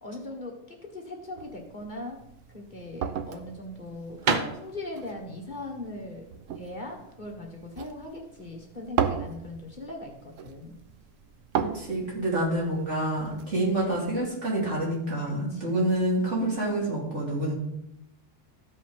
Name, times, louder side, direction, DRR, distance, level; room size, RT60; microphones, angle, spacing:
voice 1, 0.0-2.2 2.5-6.3 6.5-10.8 15.5-15.9, left 2 dB, 40° left, 0 dB, 1.7 m, -40 dB
sound 1, 1.4-14.3, right 8 dB, 90° right, 1.1 m, -37 dB
sound 2, 2.4-8.0, right 4 dB, 45° right, 0.9 m, -33 dB
voice 2, 11.5-17.5, right 1 dB, 70° right, -4 dB, 3.4 m, -27 dB
13.5 x 5.5 x 5.0 m, 0.81 s
omnidirectional pair, 1.3 m